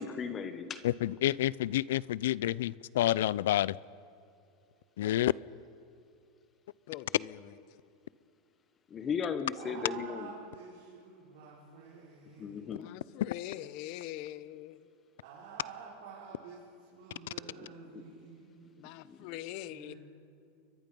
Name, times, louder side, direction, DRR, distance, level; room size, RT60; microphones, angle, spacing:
voice 1, 0.0-0.8 8.9-10.3 12.4-12.9 17.6-17.7 17.9-18.0 19.1-19.3, left 6 dB, 25° left, 9 dB, 1.3 m, -36 dB
voice 2, 0.8-3.8 5.0-5.3, left 14 dB, 80° left, 22 dB, 0.5 m, -29 dB
voice 3, 6.9-7.5 12.7-14.9 18.8-19.9, left 14 dB, 55° left, 15 dB, 1.0 m, -43 dB
voice 4, 9.6-13.2 15.2-16.6 16.9-19.0 19.7-20.0, right 5 dB, 80° right, -5 dB, 5.3 m, -49 dB
29.5 x 23.0 x 5.4 m, 2.5 s
supercardioid pair, 135°, 0 cm